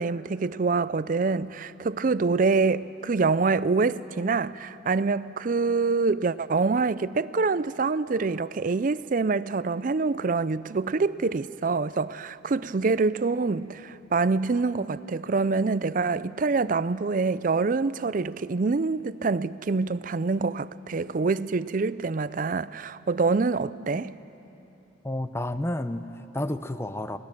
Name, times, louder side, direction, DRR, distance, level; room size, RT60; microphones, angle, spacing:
voice 1, 0.0-24.1, right 4 dB, 45° right, 0.4 m, -26 dB
voice 2, 25.0-27.2, left 1 dB, 15° left, 0.6 m, -31 dB
24.5 x 18.0 x 7.4 m
head